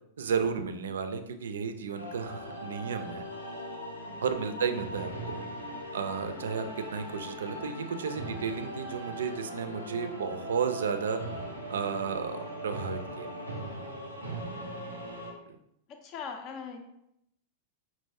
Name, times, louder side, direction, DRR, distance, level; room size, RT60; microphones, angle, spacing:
voice 1, 0.2-3.2 4.2-5.3 5.9-11.2 11.7-13.3, right 6 dB, 65° right, 8 dB, 0.4 m, -33 dB
sound 1, 2.0-15.3, right 1 dB, 85° left, 0.8 m, -40 dB
voice 2, 4.0-5.5 14.4-15.1 15.9-16.8, left 5 dB, 35° left, 4 dB, 0.5 m, -45 dB
5.2 x 3.0 x 2.7 m, 0.79 s
figure-of-eight pair, 95°, 0 cm